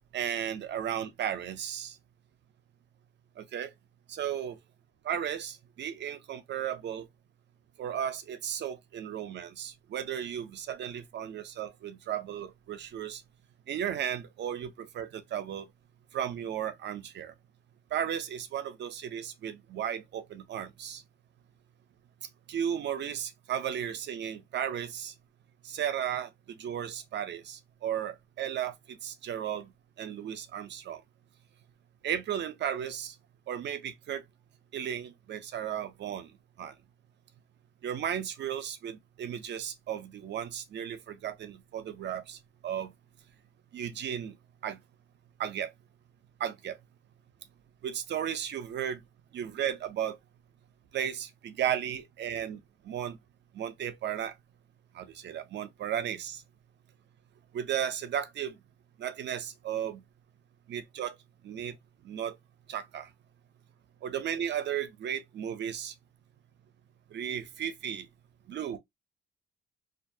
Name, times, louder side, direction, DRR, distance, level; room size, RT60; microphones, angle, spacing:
voice 1, 0.1-2.0 3.4-3.7 4.1-4.6 5.0-7.1 7.8-13.2 13.7-15.7 16.1-17.3 17.9-21.0 22.5-25.1 25.6-29.7 30.0-31.0 32.0-33.2 33.5-34.2 34.7-36.3 36.6-36.7 37.8-42.9 43.7-44.4 44.6-44.8 45.4-45.7 46.4-46.8 47.8-49.0 49.3-50.2 50.9-53.2 53.5-54.3 54.9-56.4 57.5-58.6 59.0-60.0 60.7-61.1 61.4-61.7 62.0-62.4 62.7-63.1 64.0-65.9 67.1-68.1 68.5-68.8, right 9 dB, 60° right, 0.6 m, -35 dB
2.4 x 2.2 x 2.7 m
cardioid pair, 90°, 20 cm